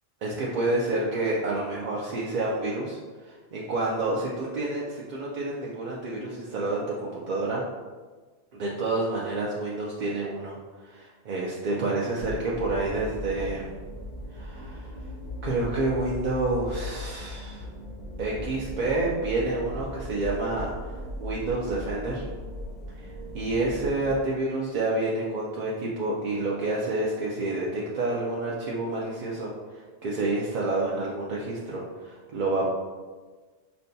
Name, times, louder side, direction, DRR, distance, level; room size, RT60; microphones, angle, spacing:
voice 1, 0.2-3.0 3.3-7.6 8.5-10.6 10.8-13.7 14.3-14.9 15.4-17.6 18.2-20.7 21.2-22.3 23.0-29.5 30.0-32.7, right 2 dB, 55° right, -5 dB, 0.5 m, -29 dB
sound 1, 12.2-24.2, left 1 dB, 45° left, 0.8 m, -38 dB
5.6 x 2.2 x 2.6 m, 1.4 s
omnidirectional pair, 1.1 m